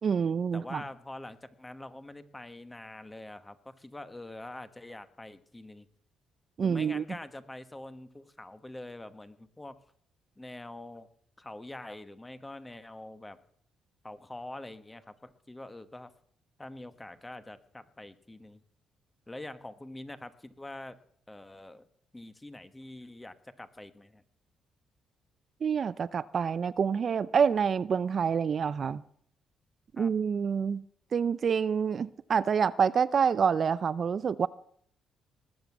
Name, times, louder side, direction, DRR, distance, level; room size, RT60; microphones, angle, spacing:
voice 1, 0.0-0.8 6.6-7.0 25.6-29.0 29.9-30.8 31.1-34.5, right 6 dB, 50° right, 0.5 m, -27 dB
voice 2, 0.5-5.9 6.6-9.7 10.4-11.1 11.4-13.4 14.0-16.1 16.6-18.6 19.3-21.0 21.3-21.9 22.1-24.2 30.0-30.1, left 1 dB, 15° left, 1.3 m, -45 dB
19.5 x 8.0 x 7.3 m
cardioid pair, 90°, 0 cm